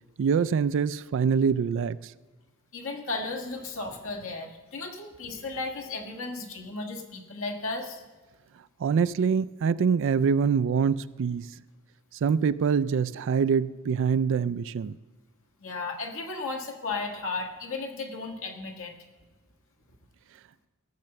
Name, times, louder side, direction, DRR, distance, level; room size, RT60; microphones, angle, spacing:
voice 1, 0.2-2.0 8.8-11.5 12.2-14.9, right 6 dB, 60° right, 0.3 m, -24 dB
voice 2, 2.7-8.0 15.6-18.9, left 3 dB, 65° left, 1.5 m, -35 dB
15.0 x 6.6 x 7.0 m
head